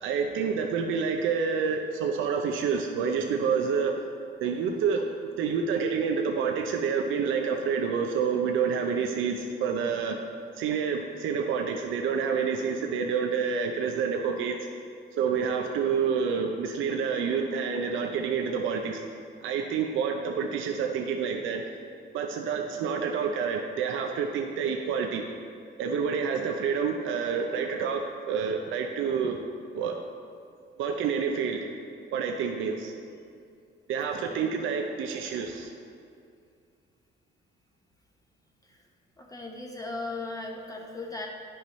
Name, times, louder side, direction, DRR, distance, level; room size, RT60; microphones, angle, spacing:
voice 1, 0.0-4.0 4.4-10.2 10.6-14.6 15.2-19.0 19.4-21.6 22.1-25.2 25.8-29.4 29.7-30.0 30.8-31.7 32.1-32.9 33.9-35.7, right 6 dB, 80° right, 3 dB, 0.5 m, -28 dB
voice 2, 39.2-41.3, left 2 dB, 15° left, -1 dB, 0.9 m, -37 dB
10.0 x 5.5 x 3.1 m, 2.3 s
cardioid pair, 90°, 20 cm